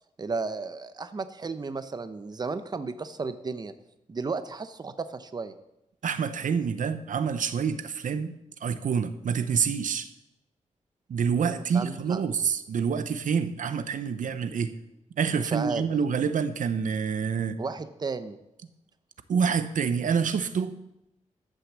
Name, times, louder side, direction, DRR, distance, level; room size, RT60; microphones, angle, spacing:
voice 1, 0.2-3.7 4.1-5.5 11.4-12.2 15.3-15.8 17.6-18.4, right 4 dB, 30° right, 11 dB, 0.7 m, -34 dB
voice 2, 6.0-10.1 11.1-14.7 15.2-17.6 19.3-20.7, right 6 dB, 90° right, 11 dB, 0.7 m, -27 dB
13.0 x 6.4 x 7.3 m, 0.88 s
wide cardioid pair, 150°, 13 cm